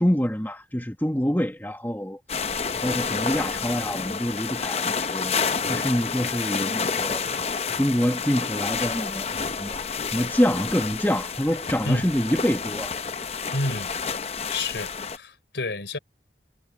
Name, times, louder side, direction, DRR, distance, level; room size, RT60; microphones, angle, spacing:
voice 1, 0.0-2.2 2.7-5.3 5.7-7.2 7.8-9.8 10.1-12.9, equal, 10° left, 1.6 m, -26 dB
sound 1, 2.3-15.2, left 5 dB, 35° left, 0.7 m, -29 dB
voice 2, 13.5-13.9 14.5-16.0, left 2 dB, 85° left, 4.1 m, -29 dB
head